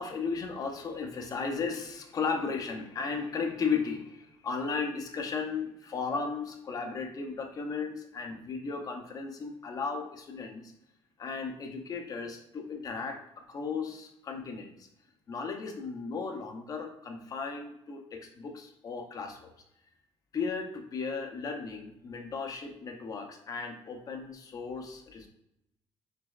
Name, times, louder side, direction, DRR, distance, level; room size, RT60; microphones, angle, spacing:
voice 1, 0.0-10.7 11.2-13.2 13.5-14.9 15.3-19.5 20.3-25.3, left 5 dB, 35° left, 3 dB, 0.6 m, -35 dB
6.1 x 3.0 x 2.4 m, 0.80 s
cardioid pair, 175°, 11 cm